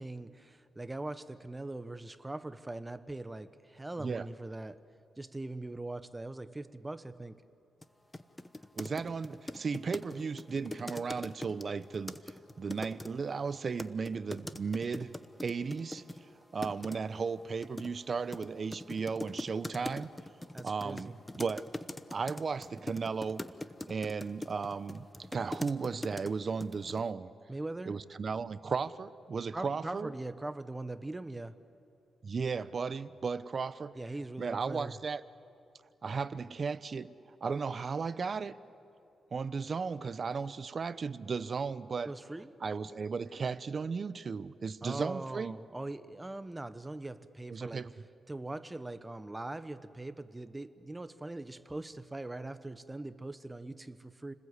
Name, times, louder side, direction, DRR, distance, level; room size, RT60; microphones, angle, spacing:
voice 1, 0.0-4.8 5.2-7.4 20.5-21.2 27.5-28.0 29.5-31.5 33.9-35.0 42.0-42.5 44.8-47.9 48.3-54.3, right 2 dB, 15° right, 12 dB, 1.0 m, -41 dB
sound 1, 7.8-7.9 8.1-13.1 13.8-16.2 16.6-17.0 17.6-26.3 26.6-27.0, left 1 dB, 15° left, 1.1 m, -42 dB
voice 2, 8.8-12.2 12.6-15.1 15.4-16.0 16.5-20.1 20.6-21.6 22.1-23.4 23.9-25.1 25.3-27.3 27.9-30.1 32.2-34.0 34.4-35.2 36.0-37.1 37.4-38.6 39.3-42.1 42.6-45.6 47.5-47.9, right 5 dB, 45° right, 15 dB, 0.8 m, -35 dB
30.0 x 20.0 x 8.1 m, 2.7 s
cardioid pair, 90°, 0 cm